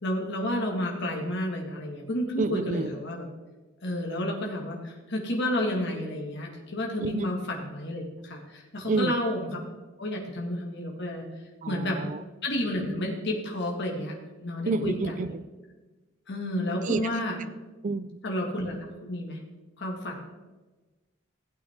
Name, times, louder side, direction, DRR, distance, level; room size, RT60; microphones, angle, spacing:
voice 1, 0.0-3.2 3.8-9.5 10.0-11.3 11.7-12.0 12.4-14.2 14.4-15.3 16.3-17.4 18.2-19.4 19.8-20.2, left 1 dB, 60° left, -1 dB, 2.0 m, -31 dB
voice 2, 2.4-2.9 7.0-7.3 8.9-9.1 11.6-12.2 14.7-15.4 16.8-17.1 17.8-18.2, right 3 dB, 40° right, 15 dB, 0.4 m, -29 dB
16.5 x 8.8 x 3.7 m, 1.2 s
head